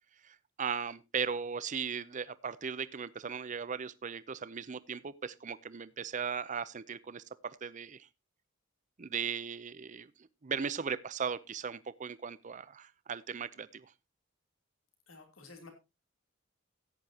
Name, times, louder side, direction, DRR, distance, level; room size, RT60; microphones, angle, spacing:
voice 1, 0.2-8.1 9.0-10.1 10.4-13.9, right 6 dB, 40° right, 16 dB, 0.6 m, -37 dB
voice 2, 15.1-15.7, left 3 dB, 90° left, 5 dB, 3.1 m, -52 dB
14.5 x 9.7 x 2.8 m, 0.25 s
head